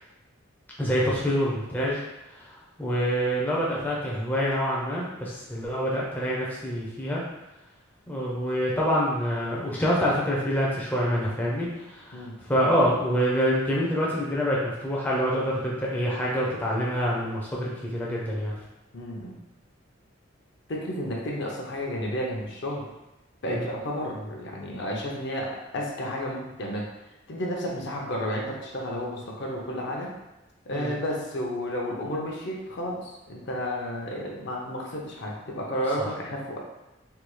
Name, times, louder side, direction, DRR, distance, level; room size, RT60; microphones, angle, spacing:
voice 1, 0.8-2.0 2.4-2.5 2.8-7.2 8.1-18.5 23.5-23.6 30.7-30.9 36.0-36.1, equal, 10° left, -5 dB, 0.5 m, -26 dB
voice 2, 18.9-19.4 20.7-22.8 23.4-25.5 25.7-26.9 27.3-30.1 30.7-36.6, equal, 60° left, -2 dB, 0.6 m, -32 dB
3.4 x 2.3 x 3.1 m, 0.97 s
head